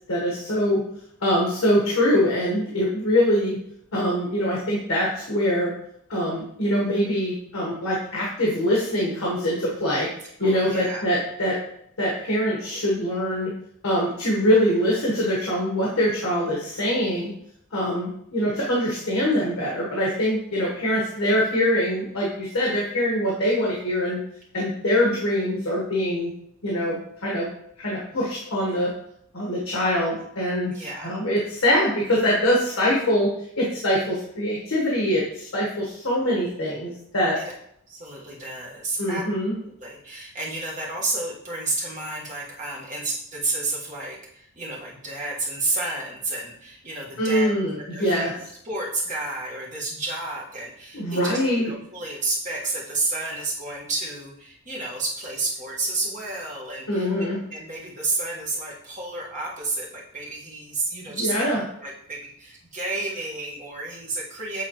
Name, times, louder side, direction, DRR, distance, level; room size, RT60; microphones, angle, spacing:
voice 1, 0.1-0.8 1.2-3.6 3.9-5.7 6.1-10.1 10.4-11.6 12.0-13.5 13.8-17.3 17.7-24.2 24.5-26.3 26.6-27.5 27.8-28.9 29.3-37.4 39.0-39.6 47.2-48.3 50.9-51.7 56.9-57.4 61.1-61.6, equal, 70° left, -4 dB, 1.3 m, -23 dB
voice 2, 10.4-11.0 30.7-31.2 37.3-37.4 37.9-39.2 39.6-47.5 47.9-48.3 48.6-51.4 51.6-64.6, right 2 dB, 35° right, -4 dB, 1.4 m, -31 dB
8.2 x 3.8 x 3.0 m, 0.73 s
head